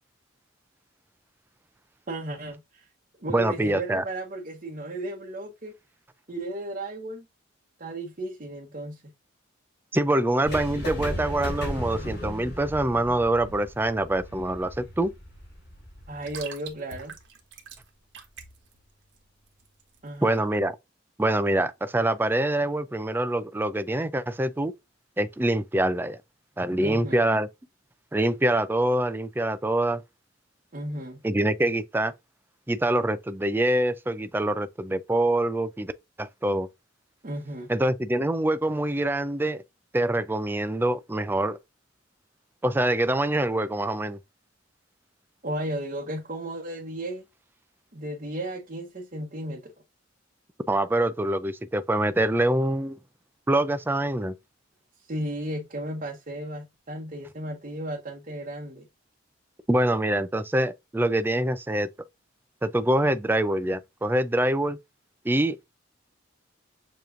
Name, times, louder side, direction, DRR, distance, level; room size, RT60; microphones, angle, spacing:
voice 1, 2.1-2.9 3.2-5.7 6.3-7.2 7.8-9.1 16.1-17.2 20.0-20.4 26.8-27.3 30.7-31.2 37.2-37.7 45.4-47.2 47.9-49.7 55.1-58.9, right 1 dB, 40° right, 0.9 m, -34 dB
voice 2, 3.3-4.0 9.9-15.1 20.2-20.8 21.2-24.7 25.2-26.2 26.6-27.5 28.1-30.0 31.2-32.1 32.7-35.9 36.2-36.7 37.7-39.6 39.9-41.6 42.6-44.2 50.7-53.0 53.5-54.3 59.7-61.9 62.6-64.8 65.2-65.6, right 1 dB, 10° right, 0.3 m, -25 dB
sound 1, 10.4-16.4, equal, 55° left, 3.0 m, -36 dB
sound 2, 13.7-20.4, right 6 dB, 65° right, 1.2 m, -47 dB
6.9 x 3.0 x 2.5 m
head